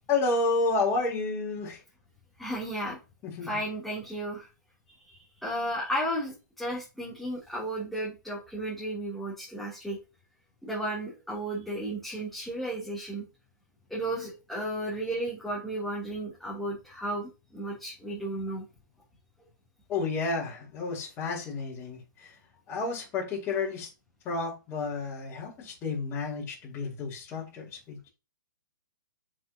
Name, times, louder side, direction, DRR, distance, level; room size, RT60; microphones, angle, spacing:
voice 1, 0.1-1.8 3.2-3.5 19.9-22.0 22.7-23.9 24.2-28.1, left 3 dB, 20° left, 4.0 m, -30 dB
voice 2, 2.4-3.0 3.4-4.5 4.9-10.0 10.6-13.2 13.9-18.6, right 1 dB, ahead, 3.2 m, -34 dB
7.5 x 6.5 x 3.0 m
figure-of-eight pair, 125°, 11 cm